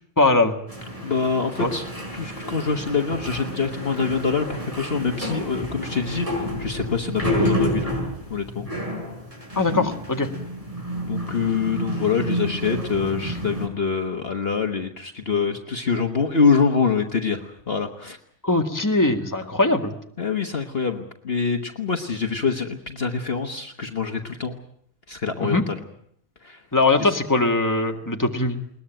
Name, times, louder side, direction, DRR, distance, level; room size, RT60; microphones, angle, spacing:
voice 1, 0.2-0.5 1.6-1.7 9.6-10.3 18.4-19.9 25.4-25.6 26.7-28.6, left 2 dB, 15° left, 3 dB, 1.9 m, -21 dB
sound 1, 0.7-13.7, equal, 25° right, 6.3 m, -29 dB
voice 2, 1.0-1.9 2.1-7.9 8.3-8.7 11.1-18.2 20.2-24.6 25.1-25.8 26.4-26.6 27.0-27.2, left 5 dB, 45° left, 5 dB, 1.5 m, -25 dB
21.0 x 20.0 x 9.1 m, 0.69 s
omnidirectional pair, 1.4 m